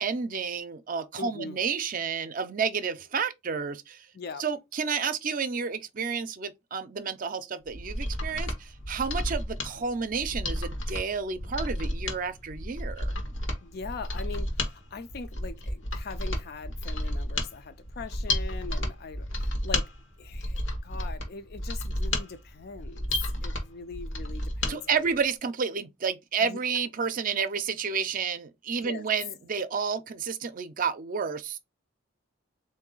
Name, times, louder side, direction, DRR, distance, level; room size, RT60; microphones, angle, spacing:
voice 1, 0.0-4.1 4.4-13.2 24.6-31.6, right 6 dB, 45° right, 0.5 m, -31 dB
voice 2, 1.2-1.6 4.1-4.4 13.6-19.9 20.2-23.1 23.4-25.1 26.4-26.6 27.4-27.5 28.8-29.1, left 4 dB, 55° left, 0.4 m, -41 dB
Mechanisms, 7.7-24.8 25.1-25.2, left 1 dB, 80° left, 1.1 m, -32 dB
3.7 x 2.6 x 3.8 m
head